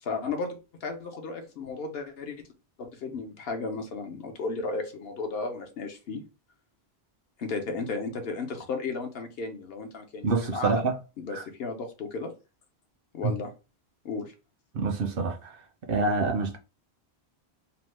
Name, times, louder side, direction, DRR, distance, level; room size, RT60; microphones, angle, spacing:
voice 1, 0.0-2.4 2.8-6.2 7.4-10.8 11.2-12.3 13.1-13.5 14.0-14.3, left 3 dB, 65° left, 0.8 m, -34 dB
voice 2, 10.2-10.9 11.3-11.4 13.2-13.3 14.7-15.4 15.9-16.6, right 3 dB, 65° right, 0.7 m, -26 dB
2.8 x 2.0 x 3.1 m
omnidirectional pair, 1.1 m